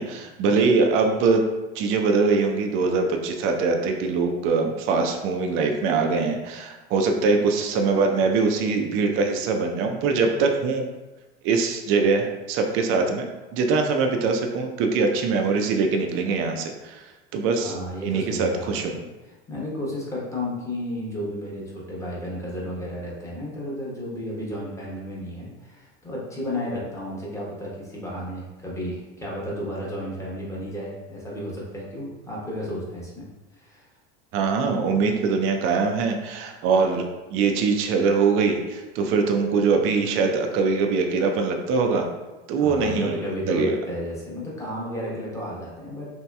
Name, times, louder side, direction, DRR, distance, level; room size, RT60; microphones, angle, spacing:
voice 1, 0.0-1.4 1.8-10.8 11.4-13.3 13.5-17.0 17.3-17.7 18.0-18.9 34.3-42.1 42.5-43.1 43.5-43.8, right 4 dB, 40° right, 4 dB, 0.4 m, -22 dB
voice 2, 17.6-19.0 19.5-33.3 33.6-33.9 42.5-46.1, left 1 dB, 10° left, -5 dB, 0.8 m, -33 dB
2.9 x 2.8 x 2.2 m, 1.1 s
hypercardioid pair, 105°, 32 cm